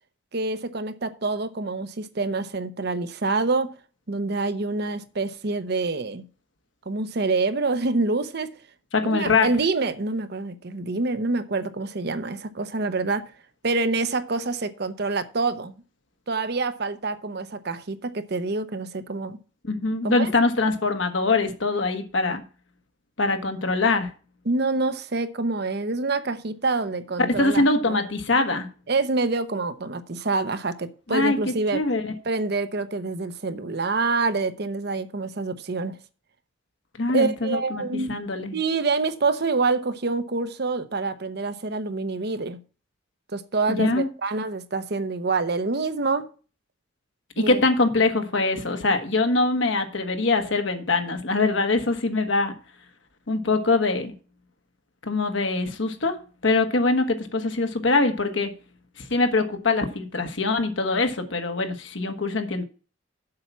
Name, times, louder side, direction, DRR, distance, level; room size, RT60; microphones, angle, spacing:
voice 1, 0.3-3.7 4.1-6.2 6.9-8.5 9.0-13.3 13.6-15.7 16.3-19.4 20.0-20.3 24.5-28.0 28.9-31.8 32.2-36.0 37.1-38.2 38.5-42.6 43.3-46.3 47.4-47.6, right 3 dB, 55° right, 0.8 m, -26 dB
voice 2, 8.9-9.5 19.6-22.4 23.2-24.1 27.3-28.7 31.1-32.1 37.0-38.6 43.7-44.1 47.4-52.5 53.3-54.1 55.0-56.2 56.4-58.5 59.0-62.6, left 3 dB, 75° left, 1.4 m, -23 dB
7.7 x 5.7 x 7.2 m
head